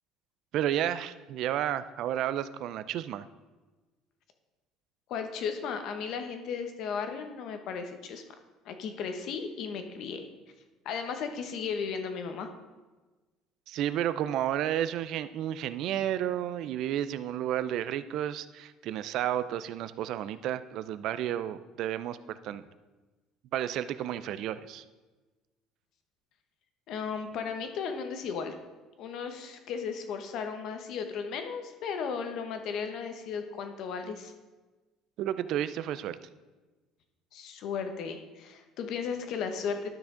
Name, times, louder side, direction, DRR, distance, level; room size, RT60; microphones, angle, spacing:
voice 1, 0.5-3.3 13.7-22.6 23.5-24.8 35.2-36.2, right 11 dB, 60° right, 13 dB, 0.4 m, -32 dB
voice 2, 5.1-8.2 8.6-10.3 10.8-12.5 26.9-28.5 29.0-34.3 37.3-39.9, left 6 dB, 55° left, 7 dB, 1.0 m, -35 dB
12.0 x 6.0 x 3.8 m, 1.2 s
cardioid pair, 140°, 0 cm